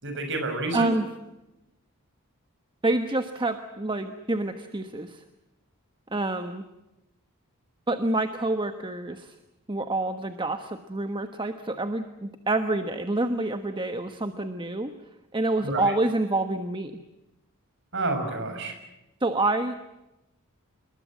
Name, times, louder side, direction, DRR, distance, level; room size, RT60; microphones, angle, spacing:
voice 1, 0.0-0.9 15.6-15.8 17.9-18.7, right 2 dB, 55° right, 6 dB, 6.5 m, -29 dB
voice 2, 0.7-1.1 2.8-5.2 6.1-6.6 7.9-9.3 9.7-14.9 15.3-16.9 19.2-19.7, right 2 dB, 20° right, 8 dB, 1.2 m, -27 dB
27.0 x 21.5 x 7.6 m, 0.95 s
head